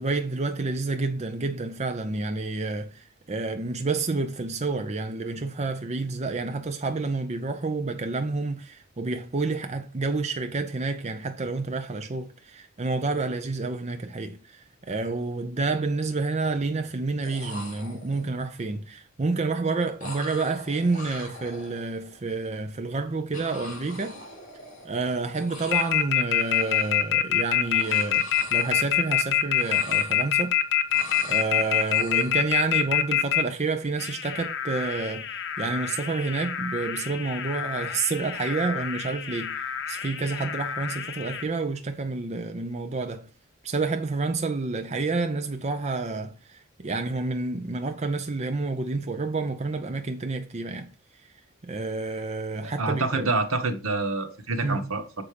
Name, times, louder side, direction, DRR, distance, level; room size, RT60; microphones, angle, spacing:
voice 1, 0.0-24.2 24.8-30.6 31.2-43.3 43.6-50.9 51.6-53.3 54.6-54.9, right 3 dB, 30° right, 0.6 m, -29 dB
sound 1, 14.8-15.0 15.3-15.9 16.9-17.0 17.2-18.4 20.0-22.2 23.3-25.1 25.3-26.1 26.3-27.2 27.6-29.2 29.5-30.5 30.9-32.4, left 1 dB, 40° left, 4.0 m, -43 dB
sound 2, 25.7-33.4 34.0-41.4, left 11 dB, 55° left, 1.0 m, -26 dB
voice 2, 52.6-55.2, right 3 dB, 75° right, 1.3 m, -27 dB
7.0 x 5.3 x 5.0 m
head